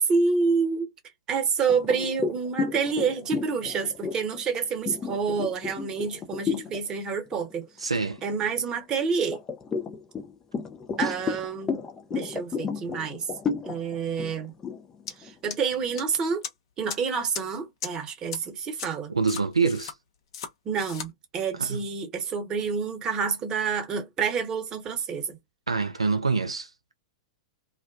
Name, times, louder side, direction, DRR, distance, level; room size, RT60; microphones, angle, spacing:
voice 1, 0.1-0.9 1.3-7.7 8.2-9.4 11.0-11.8 12.1-13.2 13.7-14.5 15.2-16.4 16.8-19.1 20.6-25.4, right 5 dB, 25° right, 0.9 m, -28 dB
sound 1, 1.7-6.8 7.3-7.5 7.9-8.8 9.3-16.0, left 5 dB, 20° left, 0.5 m, -32 dB
voice 2, 7.8-8.2 11.0-11.1 19.1-19.9 21.6-21.8 25.7-26.7, right 4 dB, 85° right, 0.4 m, -26 dB
sound 2, 15.1-15.2 15.5-16.0 16.4-16.5 16.9-17.0 17.3-17.4 17.8-17.9 18.3-18.4 18.8-18.9 19.3-19.9 20.3-20.5 20.8-21.1, left 7 dB, 55° left, 0.8 m, -35 dB
2.4 x 2.1 x 2.3 m
figure-of-eight pair, 100°, 3 cm